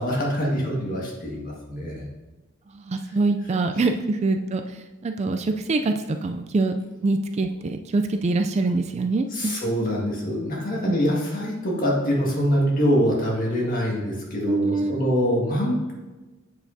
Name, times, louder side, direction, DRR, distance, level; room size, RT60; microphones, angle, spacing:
voice 1, 0.0-2.0 3.8-3.9 9.3-15.9, equal, 40° left, -2 dB, 1.8 m, -24 dB
voice 2, 2.7-4.8 5.0-9.5 10.9-11.0 14.5-15.3, right 3 dB, 30° right, 6 dB, 0.3 m, -24 dB
8.1 x 7.1 x 2.7 m, 1.2 s
head